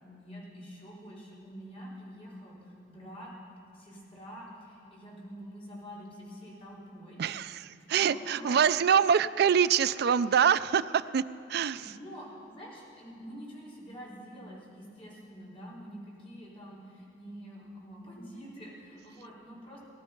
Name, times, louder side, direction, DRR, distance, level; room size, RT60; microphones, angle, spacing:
voice 1, 0.0-3.3 3.7-7.2 7.9-8.6 11.7-19.8, equal, 35° left, -7 dB, 4.2 m, -46 dB
voice 2, 7.2-11.2 11.5-11.9, right 7 dB, 60° right, 15 dB, 0.4 m, -25 dB
19.0 x 12.0 x 5.3 m, 2.5 s
head